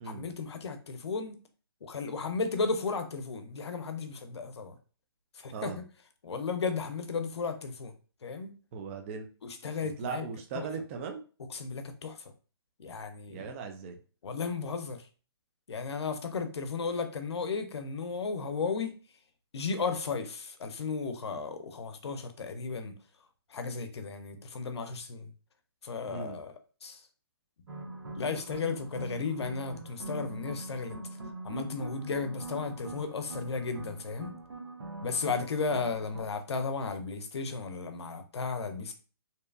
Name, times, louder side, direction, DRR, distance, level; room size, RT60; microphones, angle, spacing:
voice 1, 0.0-1.4 1.8-4.8 5.4-5.7 6.2-7.9 8.2-8.5 9.4-10.2 10.5-10.7 11.5-12.2 12.8-13.5 14.2-15.0 15.7-18.9 19.5-22.9 23.5-25.3 25.8-26.5 26.8-27.0 28.2-31.0 31.4-34.3 35.0-38.9, left 4 dB, 80° left, 0.5 m, -34 dB
voice 2, 5.5-5.8 8.7-9.3 9.8-11.2 13.3-14.0 26.1-26.4, right 5 dB, 30° right, 0.3 m, -38 dB
sound 1, 27.7-36.2, right 2 dB, 80° right, 0.7 m, -43 dB
2.7 x 2.2 x 2.3 m
hypercardioid pair, 140°, 14 cm